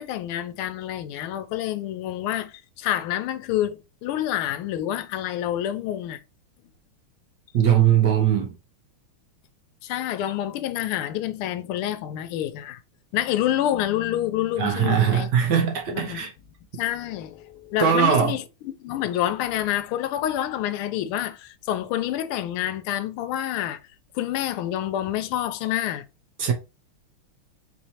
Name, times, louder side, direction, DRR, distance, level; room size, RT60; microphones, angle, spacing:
voice 1, 0.0-6.2 9.8-12.8 13.1-15.3 15.9-16.2 16.8-23.8 24.1-26.0, left 12 dB, 85° left, 1.5 m, -28 dB
voice 2, 7.5-8.5 14.6-16.3 17.8-18.4 26.4-26.5, right 8 dB, 60° right, 1.2 m, -20 dB
4.4 x 3.1 x 2.7 m
omnidirectional pair, 2.4 m